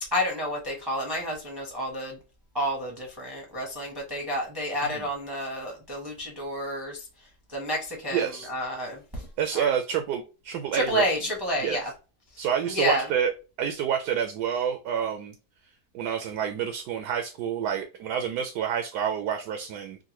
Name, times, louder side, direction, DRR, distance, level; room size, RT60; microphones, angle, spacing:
voice 1, 0.1-2.2 2.5-7.0 7.5-9.2 9.5-9.7 10.7-11.9 12.4-13.0, equal, 20° right, 0.7 m, -30 dB
voice 2, 8.1-8.5 9.4-11.0 11.6-11.8 12.4-13.3 13.6-15.3 15.9-20.0, right 8 dB, 80° right, 1.1 m, -28 dB
3.7 x 2.1 x 2.9 m
omnidirectional pair, 1.7 m